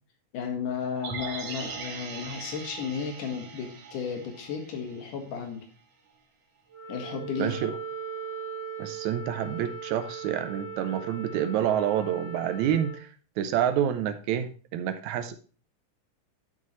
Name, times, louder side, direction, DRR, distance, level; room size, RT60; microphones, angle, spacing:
voice 1, 0.3-5.6 6.9-7.6, left 6 dB, 80° left, 3 dB, 3.1 m, -34 dB
sound 1, 1.0-5.2 5.5-5.6, right 5 dB, 55° right, 1.7 m, -40 dB
Wind instrument woodwind instrument, 6.7-13.0, right 6 dB, 35° right, 1.0 m, -39 dB
voice 2, 7.4-7.7 8.8-13.1 13.4-15.4, right 10 dB, 80° right, 9 dB, 1.8 m, -28 dB
11.0 x 5.5 x 3.1 m, 0.38 s
omnidirectional pair, 3.6 m